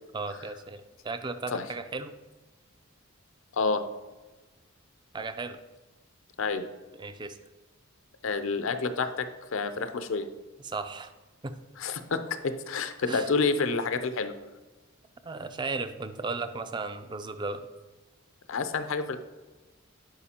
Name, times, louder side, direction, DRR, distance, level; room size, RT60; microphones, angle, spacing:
voice 1, 0.1-2.1 5.1-5.6 6.9-7.4 10.6-11.1 11.4-11.5 13.1-13.3 15.2-17.7, right 3 dB, 20° right, 10 dB, 0.3 m, -35 dB
voice 2, 8.2-9.3 9.5-10.2 11.8-14.3 18.5-19.2, left 4 dB, 65° left, 10 dB, 0.5 m, -28 dB
11.0 x 4.9 x 2.9 m, 1.2 s
head